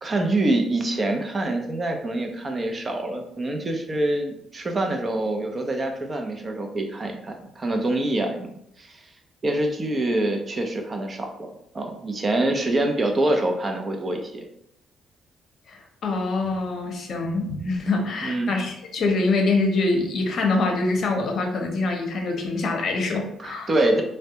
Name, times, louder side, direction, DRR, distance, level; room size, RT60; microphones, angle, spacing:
voice 1, 0.0-8.5 8.8-9.0 9.4-11.5 11.7-14.4 18.2-18.6 23.4-24.0, right 1 dB, 35° right, 3 dB, 0.5 m, -25 dB
voice 2, 15.7-23.7, left 3 dB, 60° left, 2 dB, 0.7 m, -25 dB
3.3 x 2.1 x 2.8 m, 0.75 s
cardioid pair, 90°, 0 cm